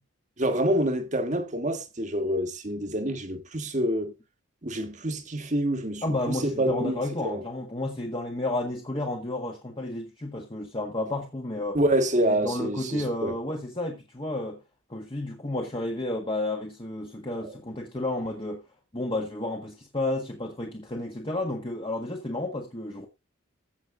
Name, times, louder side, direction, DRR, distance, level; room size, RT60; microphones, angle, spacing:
voice 1, 0.4-4.1 4.6-7.4 11.7-13.4 17.4-17.6, right 1 dB, 35° right, 1.6 m, -27 dB
voice 2, 6.0-11.8 12.2-14.6 14.9-18.6 18.9-23.1, left 2 dB, 25° left, 1.6 m, -31 dB
15.5 x 6.3 x 3.8 m
head